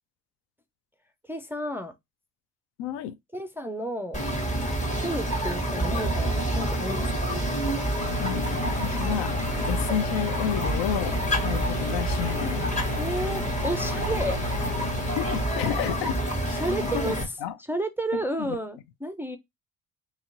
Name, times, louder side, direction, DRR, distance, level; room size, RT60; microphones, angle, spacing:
voice 1, 1.3-1.9 3.3-4.2 4.9-7.2 13.0-14.4 14.8-15.0 16.5-17.2 17.7-19.4, right 1 dB, 5° right, 0.4 m, -32 dB
voice 2, 2.8-3.1 8.2-8.4 8.8-9.3 9.7-12.6 15.2-16.2 16.5-16.6 16.9-17.6 18.1-18.6, left 10 dB, 65° left, 0.5 m, -31 dB
sound 1, 4.1-17.2, right 1 dB, 15° left, 1.1 m, -28 dB
sound 2, 8.0-15.4, left 3 dB, 90° left, 1.2 m, -33 dB
2.8 x 2.8 x 2.5 m
hypercardioid pair, 60°, 46 cm